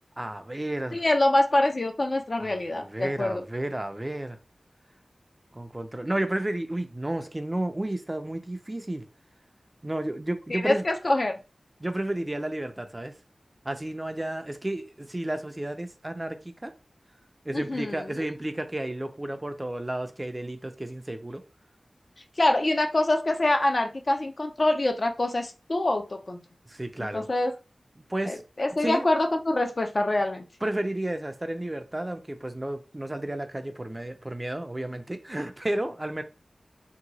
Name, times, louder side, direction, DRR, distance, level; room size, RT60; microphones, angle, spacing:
voice 1, 0.2-1.0 2.4-4.4 5.5-9.1 9.8-10.8 11.8-13.1 13.6-16.7 17.4-21.4 26.7-27.3 28.1-28.4 28.8-29.1 30.6-36.2, right 1 dB, 25° right, 0.4 m, -32 dB
voice 2, 0.9-3.4 10.5-11.3 17.5-18.1 22.4-26.4 27.1-27.5 28.3-30.4, left 2 dB, 50° left, 0.5 m, -25 dB
2.8 x 2.3 x 3.9 m
wide cardioid pair, 75°, 0 cm